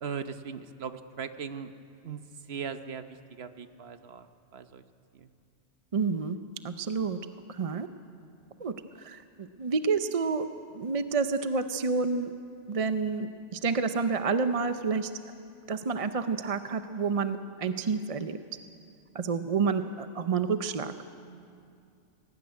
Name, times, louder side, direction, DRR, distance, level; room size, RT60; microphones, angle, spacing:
voice 1, 0.0-1.7 2.0-4.3 4.5-4.8 5.1-5.3, right 6 dB, 65° right, 10 dB, 1.1 m, -39 dB
voice 2, 5.9-6.4 6.6-7.2 7.5-7.9 8.6-12.3 12.7-15.1 15.7-18.4 19.1-20.9, right 4 dB, 40° right, 9 dB, 0.6 m, -29 dB
19.0 x 18.5 x 9.5 m, 2.5 s
omnidirectional pair, 1.2 m